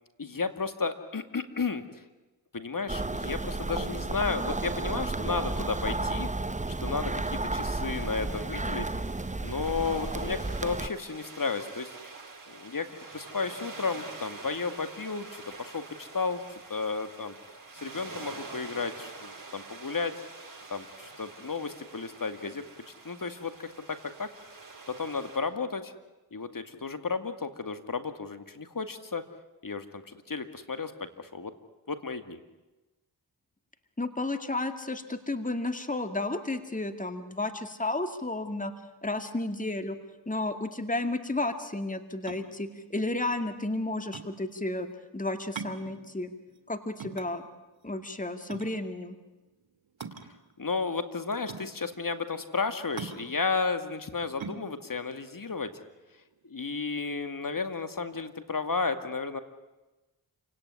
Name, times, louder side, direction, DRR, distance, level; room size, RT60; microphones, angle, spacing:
voice 1, 0.2-1.8 2.5-6.3 6.8-8.9 9.4-11.9 12.5-12.9 13.1-17.4 17.7-20.1 20.7-22.6 23.0-24.3 24.9-25.9 26.3-29.2 29.6-31.5 31.9-32.4 50.6-55.7 56.4-59.4, left 4 dB, 45° left, 9 dB, 2.3 m, -33 dB
sound 1, 2.9-10.9, right 2 dB, 15° right, 1.0 m, -32 dB
sound 2, 7.9-25.4, right 3 dB, 45° right, 6.5 m, -46 dB
voice 2, 34.0-38.7 39.0-40.0 40.3-44.9 45.1-46.3 46.7-47.5 47.8-49.2, left 2 dB, 15° left, 8 dB, 2.3 m, -32 dB
sound 3, 42.1-56.5, right 5 dB, 75° right, 2.1 m, -44 dB
28.5 x 17.5 x 9.8 m, 1.1 s
cardioid pair, 45°, 46 cm